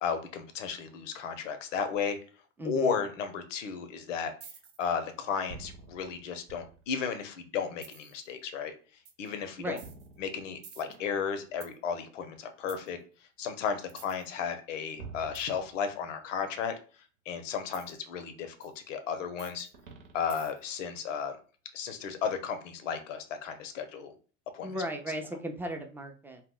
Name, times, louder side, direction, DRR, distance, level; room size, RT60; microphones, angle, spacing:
voice 1, 0.0-2.2 2.6-4.3 4.8-8.7 9.2-9.8 10.2-13.0 13.4-16.7 17.3-19.7 20.1-21.4 21.7-24.1 24.5-24.8, left 6 dB, 85° left, 8 dB, 0.6 m, -34 dB
voice 2, 2.6-3.0 9.6-9.8 24.6-26.4, right 1 dB, 5° right, 4 dB, 0.3 m, -36 dB
sound 1, 4.4-4.9 5.5-7.1 7.8-8.2 9.1-9.3 9.8-11.8 12.7-12.9 13.9-14.3 15.0-16.2 17.7-17.9 18.6-18.7 19.4-20.8, right 5 dB, 65° right, 0.9 m, -48 dB
2.1 x 2.0 x 3.6 m, 0.38 s
hypercardioid pair, 90°, 36 cm